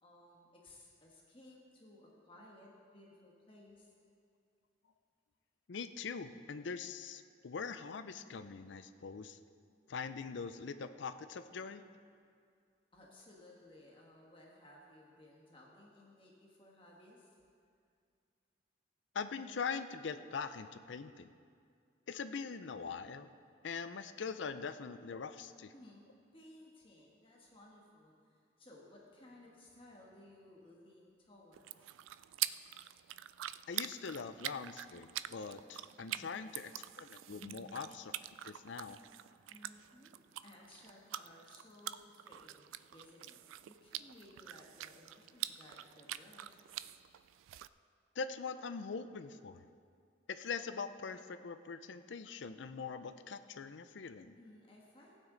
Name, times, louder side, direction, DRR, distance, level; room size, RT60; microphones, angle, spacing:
voice 1, 0.0-3.9 12.9-17.4 25.7-26.0 26.3-32.0 36.0-36.3 37.3-37.7 39.5-40.2 40.4-46.6 54.4-55.2, left 1 dB, 25° left, -2 dB, 1.4 m, -59 dB
voice 2, 5.7-9.4 9.9-11.8 19.1-21.3 22.1-23.3 23.6-25.7 33.7-36.7 37.0-38.1 38.4-39.0 48.2-49.7 50.3-54.4, left 5 dB, 70° left, 11 dB, 0.5 m, -42 dB
sound 1, 31.5-47.7, right 13 dB, 90° right, 0.3 m, -45 dB
16.0 x 9.1 x 3.9 m, 2.3 s
head